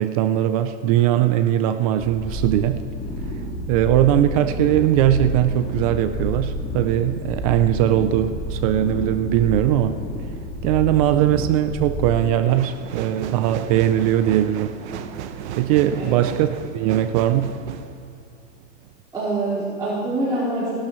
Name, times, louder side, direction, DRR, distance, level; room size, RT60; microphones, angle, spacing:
voice 1, 0.0-2.9 3.7-10.0 10.6-14.7 15.6-17.6, right 12 dB, 30° right, 10 dB, 0.4 m, -20 dB
sound 1, 2.0-12.3, equal, 25° left, 3.0 m, -30 dB
sound 2, 12.5-19.0 19.5-19.6, right 8 dB, 65° right, 1.1 m, -35 dB
voice 2, 19.1-20.8, right 2 dB, 10° right, -12 dB, 4.5 m, -25 dB
29.5 x 12.0 x 3.1 m, 2.4 s
supercardioid pair, 155°, 37 cm